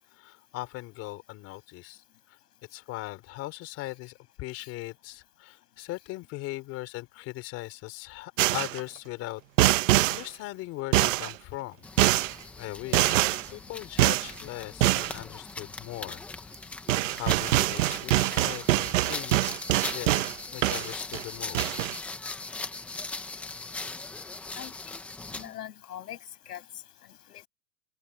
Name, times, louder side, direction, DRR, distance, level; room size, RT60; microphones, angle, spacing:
voice 1, 0.1-2.4 2.7-11.8 12.6-13.2 13.5-16.6 17.2-19.4 19.9-20.3 20.5-21.7, left 19 dB, 30° left, 3.8 m, -39 dB
sound 1, 8.4-8.8 9.6-10.2 10.9-11.3 12.0-12.3 12.9-13.5 14.0-14.3 14.8-15.1 16.5-16.6 16.9-20.3 20.6-21.2 21.5-22.0, right 16 dB, 55° right, 0.9 m, -24 dB
sound 2, 11.8-25.5, left 3 dB, 5° left, 0.5 m, -40 dB
voice 2, 24.5-25.0 25.3-26.2 26.4-26.6 27.3-27.5, left 11 dB, 85° left, 7.0 m, -42 dB
supercardioid pair, 155°, 46 cm